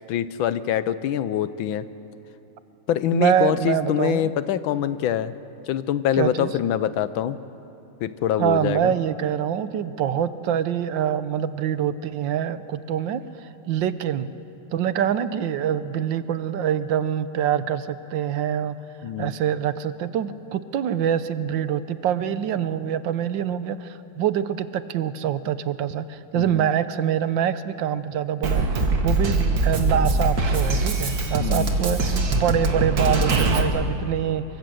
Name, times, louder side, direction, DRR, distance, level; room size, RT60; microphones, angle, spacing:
voice 1, 0.1-1.8 2.9-5.3 5.7-7.4 8.0-8.9 19.0-19.3 26.3-26.7 31.4-31.7, left 10 dB, 80° left, 14 dB, 1.5 m, -24 dB
voice 2, 3.1-4.3 6.2-6.5 8.4-14.3 14.7-18.8 19.2-28.7 29.0-34.4, right 9 dB, 75° right, 13 dB, 1.5 m, -25 dB
Drum kit, 28.4-33.6, right 2 dB, 50° right, 2.0 m, -22 dB
24.5 x 23.0 x 7.8 m, 2.9 s
omnidirectional pair, 2.1 m